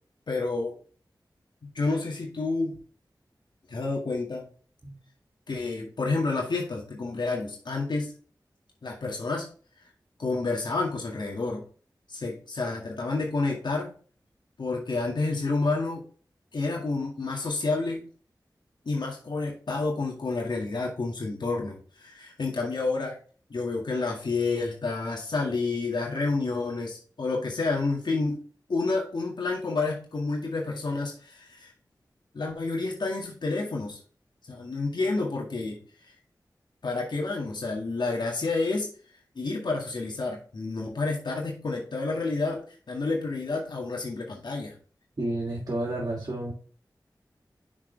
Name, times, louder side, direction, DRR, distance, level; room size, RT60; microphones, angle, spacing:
voice 1, 0.3-0.8 1.7-2.8 3.7-4.5 5.5-8.1 8.8-9.5 10.2-11.6 12.1-14.0 14.6-16.0 16.5-18.1 18.9-23.2 23.5-28.4 28.7-31.7 32.3-34.0 34.5-35.8 36.8-38.9 39.4-44.8, left 3 dB, 75° left, -1 dB, 2.0 m, -29 dB
voice 2, 45.2-46.5, right 1 dB, 50° right, -4 dB, 3.0 m, -30 dB
6.4 x 6.0 x 3.4 m, 0.41 s
wide cardioid pair, 50°, 8 cm